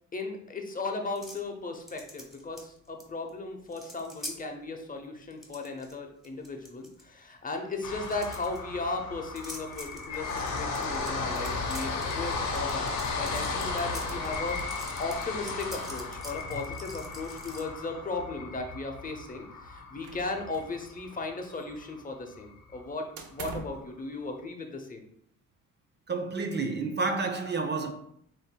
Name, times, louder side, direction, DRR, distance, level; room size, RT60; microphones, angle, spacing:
voice 1, 0.1-14.6 15.0-25.0, left 3 dB, 30° left, 0.7 m, -36 dB
sound 1, 1.2-1.4 1.9-3.0 3.3-3.4 3.6-4.3 5.2-5.9 6.2-7.0 8.0-8.6 9.4-17.6, equal, ahead, 1.2 m, -45 dB
sound 2, 7.8-21.9 22.4-22.5 22.7-22.8, left 4 dB, 80° left, 1.0 m, -35 dB
sound 3, 20.0-20.8 21.1-22.0 23.2-23.9, right 4 dB, 75° right, 0.7 m, -43 dB
voice 2, 26.1-27.9, right 3 dB, 35° right, 0.6 m, -30 dB
7.7 x 2.6 x 2.2 m
cardioid pair, 90°, 30 cm